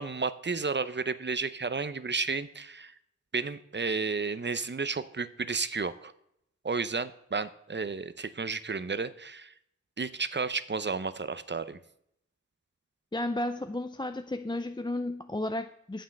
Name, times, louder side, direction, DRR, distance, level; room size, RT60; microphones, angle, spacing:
voice 1, 0.0-2.9 3.3-6.1 6.6-9.5 10.0-11.8, right 4 dB, 35° right, 14 dB, 0.7 m, -32 dB
voice 2, 13.1-16.0, left 1 dB, 15° left, 7 dB, 0.5 m, -33 dB
8.9 x 7.4 x 6.5 m, 0.75 s
wide cardioid pair, 50°, 30 cm